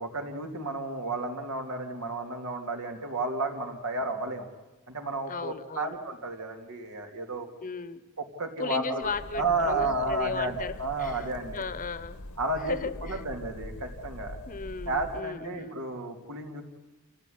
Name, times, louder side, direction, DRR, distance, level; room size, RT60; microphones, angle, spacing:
voice 1, 0.0-4.5 4.9-7.5 8.2-9.1 9.3-11.6 12.4-12.8 13.0-14.4 14.9-16.6, right 2 dB, 80° right, 3 dB, 3.0 m, -32 dB
voice 2, 5.3-6.0 7.6-8.0 8.6-10.7 11.0-11.3 11.5-12.2 12.6-13.2 14.5-15.8, left 4 dB, 40° left, 14 dB, 1.0 m, -35 dB
sound 1, 9.0-15.2, left 1 dB, 85° left, 1.4 m, -43 dB
28.0 x 16.0 x 9.6 m, 1.2 s
head